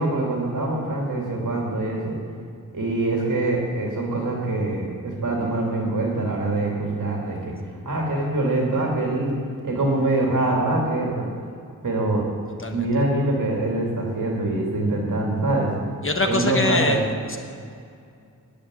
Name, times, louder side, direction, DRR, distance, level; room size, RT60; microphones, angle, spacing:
voice 1, 0.0-2.2 2.7-7.5 7.8-9.4 9.6-11.2 11.8-12.2 12.7-15.7 16.3-17.1, right 2 dB, 60° right, -1 dB, 2.5 m, -24 dB
voice 2, 16.0-17.4, left 2 dB, 35° left, 4 dB, 1.0 m, -24 dB
10.0 x 8.5 x 9.6 m, 2.3 s
wide cardioid pair, 110°, 35 cm